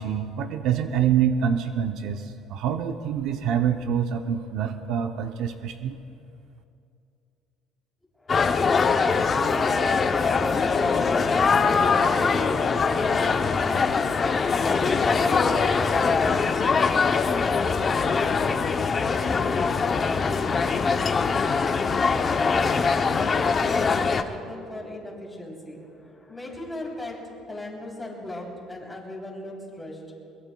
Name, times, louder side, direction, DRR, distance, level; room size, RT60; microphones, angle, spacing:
voice 1, 0.0-6.0, right 8 dB, 65° right, 7 dB, 0.6 m, -26 dB
voice 2, 8.2-21.4 21.8-30.0, left 1 dB, 5° left, -3 dB, 3.2 m, -38 dB
sound 1, 8.3-24.2, left 5 dB, 25° left, 0.6 m, -22 dB
22.5 x 21.0 x 2.2 m, 2.5 s
cardioid pair, 150°, 0 cm